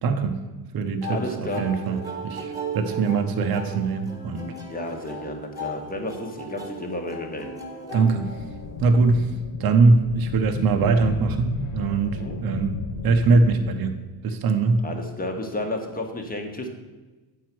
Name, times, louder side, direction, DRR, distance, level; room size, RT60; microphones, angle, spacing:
voice 1, 0.0-0.3 0.7-2.0 2.2-4.5 7.9-8.3 8.8-9.3 9.6-12.7 13.0-13.9 14.2-14.8, right 4 dB, 50° right, 6 dB, 0.9 m, -21 dB
sound 1, 1.0-9.0, right 1 dB, 10° right, 1.3 m, -37 dB
voice 2, 1.1-1.7 4.7-7.5 12.2-12.4 14.8-16.7, left 1 dB, 20° left, 3 dB, 1.1 m, -32 dB
sound 2, 8.0-14.1, left 6 dB, 45° left, 0.6 m, -35 dB
8.1 x 4.7 x 6.0 m, 1.2 s
cardioid pair, 120°, 45 cm